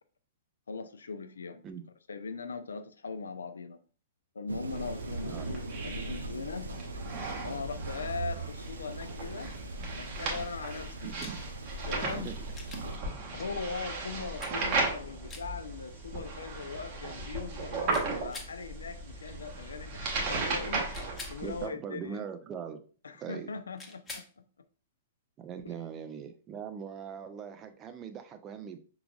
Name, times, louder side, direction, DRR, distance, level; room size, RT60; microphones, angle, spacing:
voice 1, 0.7-1.6 2.1-3.8 4.3-6.7 7.4-9.5 9.9-11.1 11.9-12.3 13.3-22.2 23.0-24.4, left 4 dB, 70° left, 0.5 m, -40 dB
Thunder, 4.5-13.0, right 2 dB, 75° right, 0.5 m, -42 dB
sound 1, 4.7-21.7, right 3 dB, 40° right, 1.2 m, -36 dB
voice 2, 11.0-11.4 12.0-12.5 13.3-13.4 21.4-22.8 23.2-23.5 25.4-28.8, right 7 dB, 25° right, 0.5 m, -41 dB
sound 2, 11.2-11.4 12.5-12.9 14.4-14.6 15.3-15.5 17.9-18.5 20.9-21.4 23.8-24.3 26.6-26.7, left 3 dB, 10° left, 0.9 m, -44 dB
5.7 x 3.9 x 2.4 m
figure-of-eight pair, 110°, 0 cm